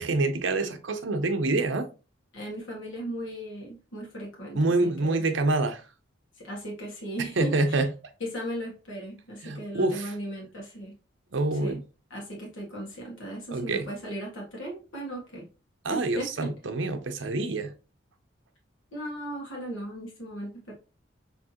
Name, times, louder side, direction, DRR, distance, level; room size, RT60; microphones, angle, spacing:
voice 1, 0.0-1.9 4.5-5.9 7.4-7.9 9.4-10.1 11.3-11.8 13.5-13.9 15.8-17.7, right 2 dB, 75° right, 0.7 m, -26 dB
voice 2, 2.3-5.2 6.4-7.8 8.2-10.9 11.6-11.8 12.1-15.5 15.9-16.5 18.9-20.7, right 1 dB, 85° left, 1.8 m, -37 dB
4.6 x 3.4 x 2.9 m
head